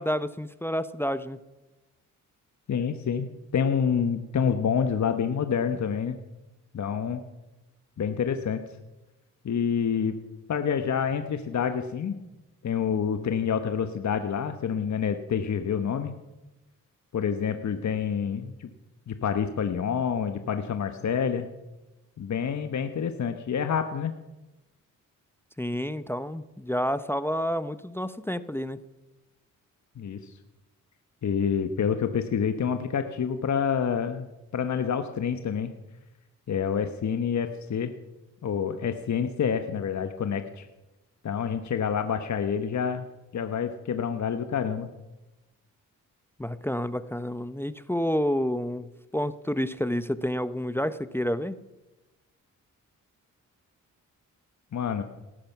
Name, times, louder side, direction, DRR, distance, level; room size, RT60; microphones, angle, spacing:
voice 1, 0.0-1.4 25.6-28.8 46.4-51.5, equal, 5° left, 14 dB, 0.7 m, -29 dB
voice 2, 2.7-6.2 6.7-7.2 8.0-8.6 9.4-10.2 10.5-12.2 12.6-16.1 17.1-18.7 19.1-21.5 22.2-24.1 30.0-30.3 31.2-35.7 36.5-37.9 38.4-40.7 41.2-43.1 43.3-44.9 54.7-55.0, left 7 dB, 55° left, 8 dB, 1.1 m, -27 dB
18.0 x 13.0 x 5.8 m, 1.1 s
cardioid pair, 70°, 33 cm